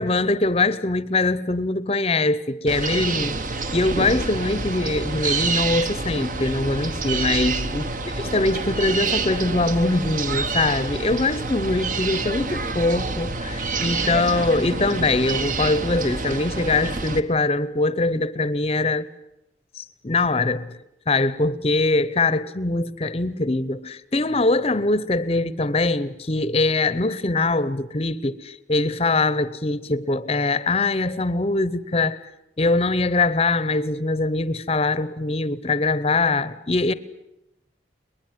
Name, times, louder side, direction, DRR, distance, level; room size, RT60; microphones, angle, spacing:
voice 1, 0.0-3.4 3.7-19.1 19.8-20.8 21.1-32.2 32.6-36.9, left 2 dB, 35° left, 0.8 m, -22 dB
sound 1, 2.7-17.2, right 3 dB, 45° right, 1.3 m, -27 dB
23.0 x 20.5 x 9.6 m
head